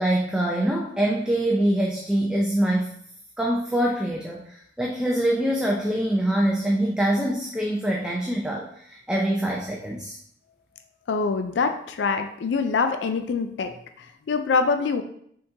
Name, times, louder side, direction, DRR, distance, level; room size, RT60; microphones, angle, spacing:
voice 1, 0.0-3.0 3.4-10.2, right 1 dB, 5° right, -2 dB, 0.4 m, -24 dB
voice 2, 11.1-13.7 14.0-15.0, left 4 dB, 70° left, 8 dB, 0.4 m, -24 dB
5.3 x 3.7 x 2.7 m, 0.68 s
head